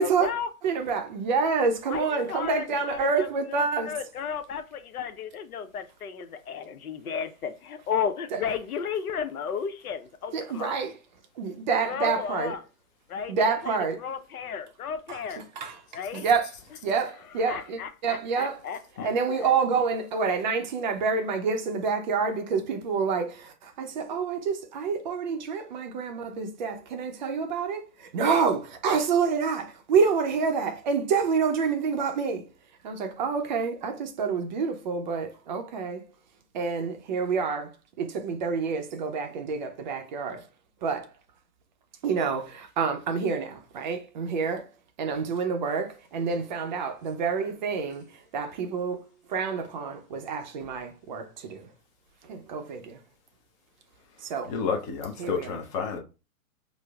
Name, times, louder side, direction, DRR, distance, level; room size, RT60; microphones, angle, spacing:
voice 1, 0.0-0.5 1.9-10.8 11.8-12.6 13.1-13.3 13.6-15.4 15.9-16.2 17.5-19.6, left 7 dB, 85° left, 0.7 m, -34 dB
voice 2, 0.6-3.9 8.3-8.4 10.3-11.0 11.4-12.6 13.3-14.0 15.1-16.5 16.8-18.6 19.0-32.5 32.8-36.0 36.5-40.4 40.8-41.1 42.0-44.7 45.0-51.7 52.2-53.0 54.2-54.5 55.2-55.6, right 5 dB, 35° right, 0.5 m, -28 dB
voice 3, 54.5-56.0, left 6 dB, 20° left, 0.5 m, -30 dB
4.9 x 2.0 x 2.3 m
hypercardioid pair, 130°, 43 cm